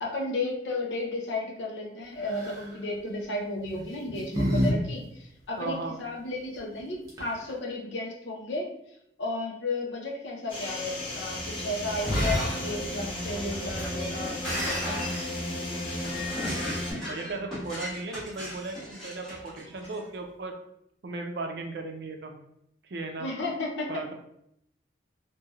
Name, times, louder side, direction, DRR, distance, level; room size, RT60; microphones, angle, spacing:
voice 1, 0.0-8.7 9.2-15.1 23.2-24.1, left 2 dB, 80° left, -1 dB, 0.6 m, -33 dB
sound 1, 2.3-2.7 3.6-4.7 5.0-5.1 6.8-6.9 7.1-7.5, equal, 20° right, 0.7 m, -28 dB
voice 2, 5.6-5.9 17.0-20.6 21.0-22.3 22.8-23.3 23.9-24.1, right 3 dB, 60° right, 4 dB, 0.4 m, -36 dB
sound 2, 10.5-16.9, left 1 dB, 30° left, 0.7 m, -34 dB
Shatter, 11.9-19.9, equal, ahead, 1.1 m, -34 dB
3.1 x 2.6 x 2.3 m, 0.75 s
head